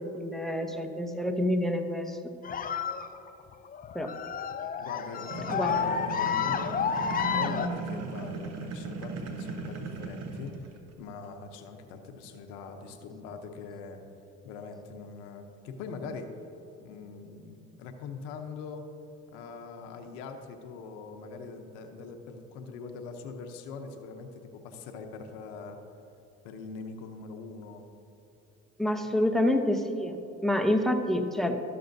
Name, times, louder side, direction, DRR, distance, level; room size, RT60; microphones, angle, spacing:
voice 1, 0.0-2.4 3.9-4.1 5.5-5.9 28.8-31.6, left 1 dB, ahead, 6 dB, 0.8 m, -28 dB
sound 1, 2.4-7.7, left 7 dB, 30° left, 0.5 m, -30 dB
voice 2, 4.8-10.6 11.0-14.0 14.4-16.3 16.8-18.8 19.3-25.8 26.4-27.8 29.0-29.1, left 4 dB, 85° left, 5 dB, 0.8 m, -42 dB
sound 2, 5.3-10.9, right 4 dB, 60° right, 0.9 m, -37 dB
12.5 x 6.8 x 2.6 m, 2.9 s
supercardioid pair, 75°, 29 cm